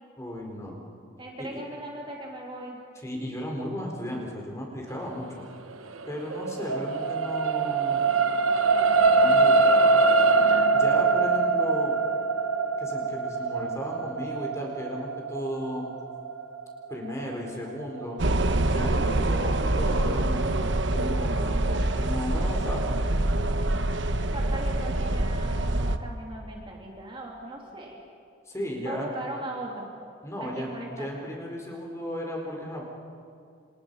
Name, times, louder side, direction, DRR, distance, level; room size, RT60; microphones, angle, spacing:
voice 1, 0.2-0.8 1.4-1.6 3.0-5.5 6.1-8.0 9.0-10.0 10.7-12.0 12.8-15.8 16.9-18.2 18.7-23.0 28.5-29.1 30.2-32.8, equal, 15° left, -1 dB, 4.3 m, -35 dB
voice 2, 1.2-2.8 11.2-11.3 24.3-28.0 28.8-29.9 30.4-31.1, right 1 dB, 25° right, -1 dB, 2.9 m, -38 dB
sound 1, 5.9-18.4 18.9-19.0, right 4 dB, 80° right, 1.3 m, -23 dB
sound 2, 18.2-26.0, right 1 dB, 60° right, 1.1 m, -25 dB
29.5 x 28.5 x 5.6 m, 2.5 s
head